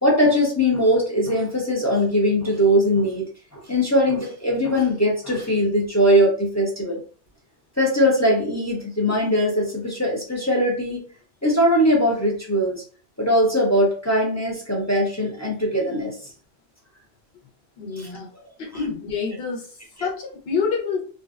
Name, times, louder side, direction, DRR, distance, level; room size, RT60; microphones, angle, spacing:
voice 1, 0.0-3.2 3.5-7.0 7.8-11.0 11.4-12.8 13.2-16.1, equal, 20° left, -2 dB, 0.4 m, -20 dB
voice 2, 17.8-18.3 18.6-21.1, left 5 dB, 60° left, -1 dB, 1.0 m, -28 dB
2.5 x 2.3 x 2.3 m, 0.40 s
omnidirectional pair, 1.2 m